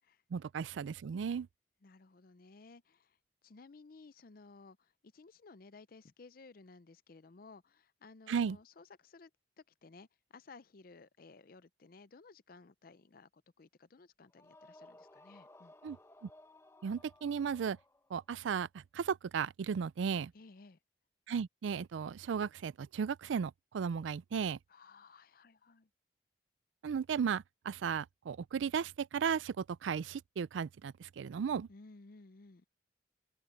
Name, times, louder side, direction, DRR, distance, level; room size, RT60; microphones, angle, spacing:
voice 1, 0.3-1.5 8.3-8.6 15.8-16.0 16.8-17.8 18.1-20.3 21.3-24.6 26.8-31.7, right 6 dB, 85° right, 0.4 m, -35 dB
voice 2, 1.8-3.1 3.4-4.8 5.1-9.3 9.8-10.1 10.3-13.3 13.6-15.7 20.3-20.8 24.7-25.9 31.7-32.6, left 3 dB, 50° left, 0.6 m, -57 dB
sound 1, 14.3-18.3, left 1 dB, 15° left, 0.9 m, -59 dB
head